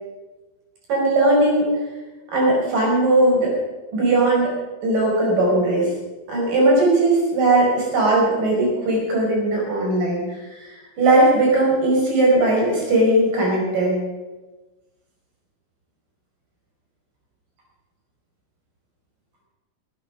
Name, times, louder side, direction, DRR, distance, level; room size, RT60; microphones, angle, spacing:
voice 1, 0.9-1.6 2.3-3.5 3.9-4.5 4.8-5.9 6.3-14.0, right 2 dB, 85° right, -2 dB, 6.4 m, -18 dB
18.5 x 9.2 x 6.2 m, 1.2 s
omnidirectional pair, 3.7 m